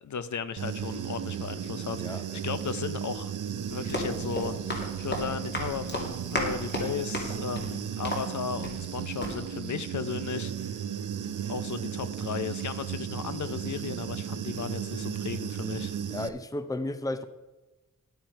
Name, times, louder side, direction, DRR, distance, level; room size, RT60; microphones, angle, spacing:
voice 1, 0.0-3.3 3.7-4.6 5.0-10.8 11.5-15.9, left 7 dB, 70° left, 13 dB, 0.7 m, -35 dB
Human voice / Buzz, 0.6-16.3, right 9 dB, 80° right, 0.6 m, -35 dB
voice 2, 2.0-2.4 16.1-17.3, left 2 dB, 10° left, 12 dB, 0.5 m, -33 dB
Run, 3.6-8.9 9.2-9.4, left 1 dB, 35° left, 2.4 m, -35 dB
11.0 x 9.0 x 4.5 m, 1.1 s
wide cardioid pair, 140°, 31 cm